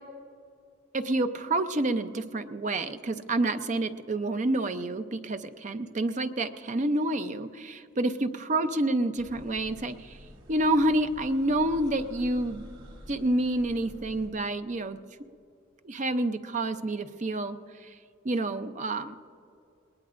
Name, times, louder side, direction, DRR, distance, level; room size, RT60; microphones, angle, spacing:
voice 1, 0.9-10.2 10.5-12.6 13.1-15.0 15.8-17.6 17.8-17.9 18.2-19.2, right 1 dB, 40° right, 9 dB, 0.6 m, -28 dB
sound 1, 9.2-14.3, equal, 80° right, 3.8 m, -48 dB
20.5 x 19.5 x 2.5 m, 2.4 s
head